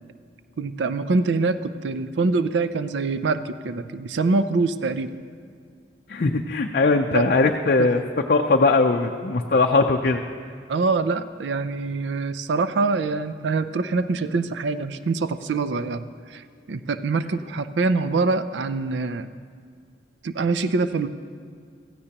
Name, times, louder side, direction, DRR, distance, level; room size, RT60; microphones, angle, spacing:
voice 1, 0.6-5.2 7.1-7.3 7.8-7.9 10.7-16.0 16.3-16.4 16.7-19.3 20.2-21.1, right 3 dB, 80° right, 12 dB, 0.4 m, -24 dB
voice 2, 6.1-8.0 8.3-10.2, left 3 dB, 55° left, 3 dB, 0.5 m, -20 dB
16.5 x 14.5 x 2.9 m, 2.1 s
head